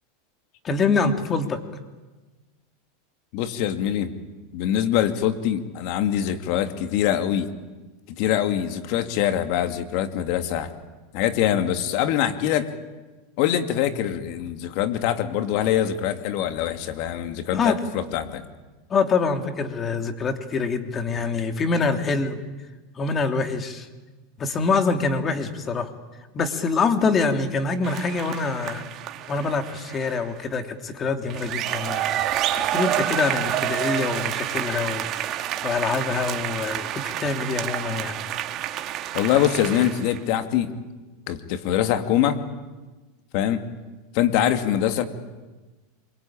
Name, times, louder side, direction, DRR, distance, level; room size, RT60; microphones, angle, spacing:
voice 1, 0.6-1.6 17.5-17.8 18.9-22.4 23.0-23.9 24.4-25.9 26.3-28.8 29.3-32.1 32.5-35.0 35.6-38.1, left 4 dB, 25° left, 6 dB, 2.9 m, -25 dB
voice 2, 3.3-4.1 4.5-7.5 8.2-10.7 11.1-12.7 13.4-18.4 39.1-40.7 41.3-42.4 43.3-43.6 44.1-45.1, left 11 dB, 60° left, 8 dB, 2.5 m, -23 dB
sound 1, 27.8-30.3 31.2-40.2, right 12 dB, 40° right, 1.9 m, -29 dB
26.0 x 24.0 x 8.9 m, 1.2 s
supercardioid pair, 125°, 0 cm